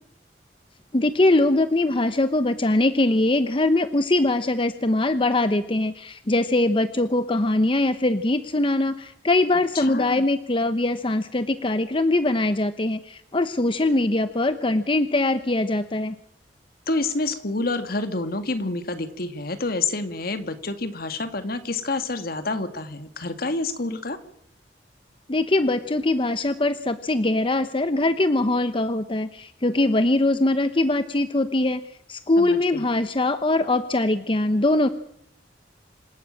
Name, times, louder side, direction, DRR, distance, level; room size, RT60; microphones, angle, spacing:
voice 1, 0.9-16.1 25.3-31.8 32.1-34.9, left 2 dB, 30° left, 11 dB, 0.9 m, -22 dB
voice 2, 9.7-10.2 16.9-24.2 32.4-32.8, left 3 dB, 60° left, 9 dB, 2.0 m, -28 dB
27.0 x 13.0 x 8.8 m, 0.70 s
head